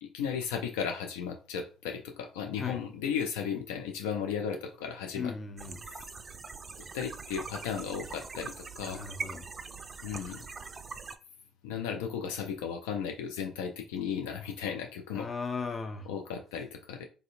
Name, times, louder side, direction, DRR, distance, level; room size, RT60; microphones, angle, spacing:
voice 1, 0.0-5.3 6.8-9.0 10.0-10.4 11.6-15.3 16.0-17.0, left 7 dB, 75° left, 4 dB, 0.3 m, -35 dB
voice 2, 5.2-5.8 8.9-9.5 15.1-16.1, left 4 dB, 35° left, 5 dB, 0.7 m, -36 dB
sound 1, 5.6-11.2, right 4 dB, 35° right, 0.3 m, -42 dB
3.1 x 2.6 x 2.5 m, 0.37 s
hypercardioid pair, 55°, 0 cm